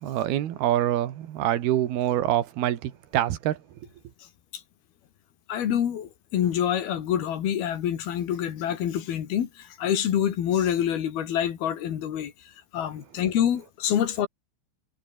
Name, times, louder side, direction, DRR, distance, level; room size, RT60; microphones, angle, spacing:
voice 1, 0.0-3.6, right 12 dB, 75° right, 3.7 m, -25 dB
voice 2, 5.5-12.3 12.7-14.3, left 10 dB, 70° left, 4.1 m, -26 dB
omnidirectional pair, 4.6 m